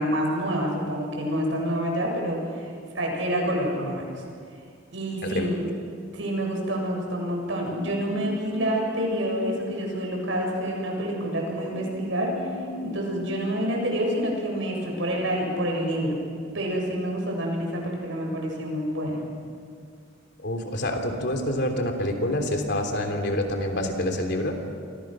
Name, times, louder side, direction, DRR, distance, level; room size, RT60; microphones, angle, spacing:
voice 1, 0.0-4.0 4.9-5.6 6.1-12.3 12.8-16.2 16.5-19.2, equal, 75° right, 0 dB, 7.5 m, -27 dB
sound 1, 7.3-16.6 16.9-17.0, left 2 dB, 10° left, 5.3 m, -42 dB
voice 2, 20.4-24.6, left 1 dB, 60° left, 4 dB, 3.3 m, -27 dB
30.0 x 24.5 x 6.4 m, 2.2 s
head